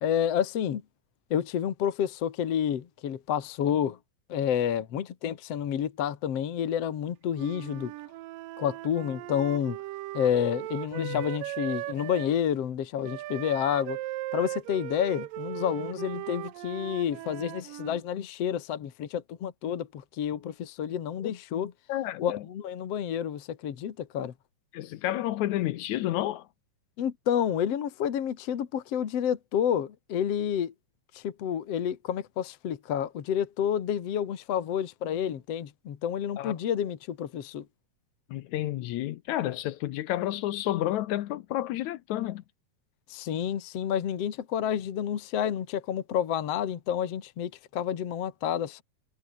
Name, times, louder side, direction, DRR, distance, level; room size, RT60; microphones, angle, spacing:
voice 1, 0.0-0.8 1.3-4.0 4.3-7.9 8.6-9.8 10.1-14.0 14.3-21.7 22.2-24.3 27.0-30.7 31.1-37.7 43.1-48.8, left 9 dB, 55° left, 2.5 m, -29 dB
Wind instrument woodwind instrument, 7.3-12.3 13.0-18.0, right 16 dB, 85° right, 2.6 m, -38 dB
voice 2, 21.9-22.4 24.7-26.4 36.4-36.5 38.3-42.4, left 14 dB, 75° left, 1.9 m, -30 dB
omnidirectional pair, 3.8 m